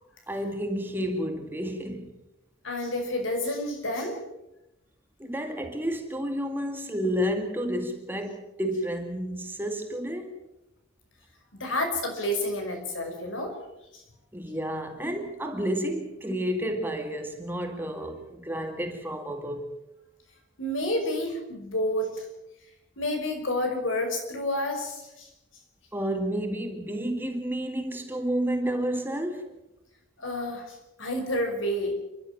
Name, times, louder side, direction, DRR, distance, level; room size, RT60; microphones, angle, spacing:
voice 1, 0.3-2.1 5.2-10.3 14.3-19.7 25.9-29.5, equal, 10° right, 2.1 m, -30 dB
voice 2, 2.6-4.2 11.5-13.6 13.9-14.0 20.6-22.3 23.0-25.3 30.2-32.0, left 1 dB, 80° left, 5.5 m, -29 dB
29.5 x 12.0 x 7.6 m
head